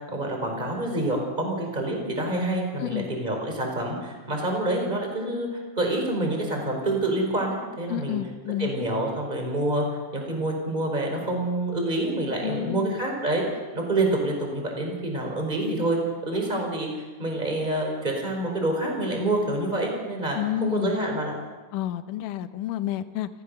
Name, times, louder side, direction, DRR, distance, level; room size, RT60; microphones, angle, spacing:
voice 1, 0.1-8.2 8.6-9.8 10.1-13.4 13.7-16.9 17.2-21.3, right 1 dB, 15° right, 1 dB, 4.7 m, -27 dB
voice 2, 7.9-8.9 12.4-13.0 20.3-21.0 21.7-23.3, left 13 dB, 80° left, 10 dB, 2.4 m, -30 dB
28.5 x 14.5 x 6.7 m, 1.3 s
omnidirectional pair, 3.8 m